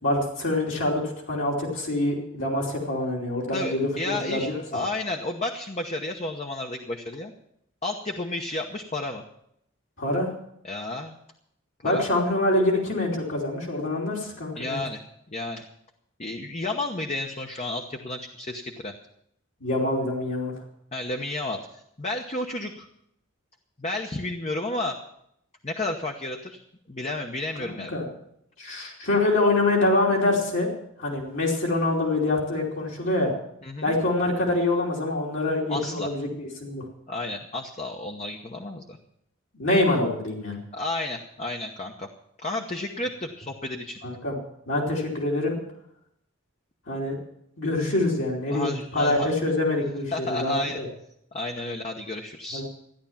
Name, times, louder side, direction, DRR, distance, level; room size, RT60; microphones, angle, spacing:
voice 1, 0.0-4.6 10.0-10.3 11.8-14.8 19.6-20.5 27.7-28.0 28.6-30.7 31.0-33.3 33.8-36.8 39.5-40.6 44.0-44.4 44.7-45.6 46.9-47.2 47.6-50.9 52.5-52.6, left 2 dB, 65° left, -3 dB, 3.1 m, -25 dB
voice 2, 3.5-7.3 7.8-9.2 10.6-11.2 11.8-12.0 14.5-15.0 15.3-15.7 16.2-18.9 20.9-22.9 23.8-25.0 25.6-26.6 26.9-27.9 33.6-33.9 35.7-36.1 37.1-39.0 40.7-42.1 42.4-44.0 48.5-49.3 50.1-50.8 51.3-52.6, left 2 dB, 30° left, 3 dB, 1.0 m, -32 dB
14.5 x 10.5 x 7.2 m, 0.76 s
head